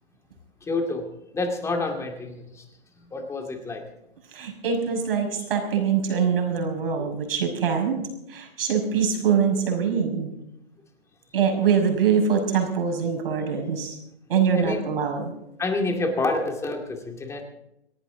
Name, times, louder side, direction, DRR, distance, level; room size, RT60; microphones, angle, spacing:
voice 1, 0.6-1.1 1.3-2.7 3.1-3.8 7.0-7.1 14.5-14.8 15.6-17.4, left 2 dB, 10° left, 3 dB, 2.3 m, -28 dB
voice 2, 4.3-8.0 8.3-10.3 11.3-14.0 14.3-15.3, right 6 dB, 60° right, 3 dB, 5.9 m, -23 dB
27.0 x 11.0 x 3.9 m, 0.84 s
hypercardioid pair, 140°, 32 cm